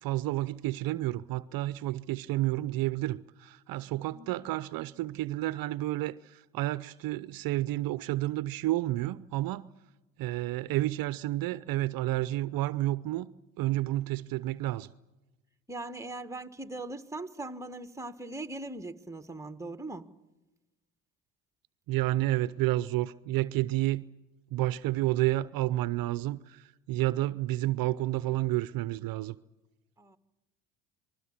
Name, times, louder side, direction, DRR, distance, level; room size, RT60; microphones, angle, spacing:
voice 1, 0.0-9.7 10.2-13.3 13.6-14.9 21.9-24.0 24.5-29.4, right 16 dB, 55° right, 0.7 m, -30 dB
voice 2, 15.7-20.1 30.0-30.2, right 2 dB, 5° right, 1.5 m, -40 dB
27.5 x 20.5 x 7.3 m
hypercardioid pair, 65°, 41 cm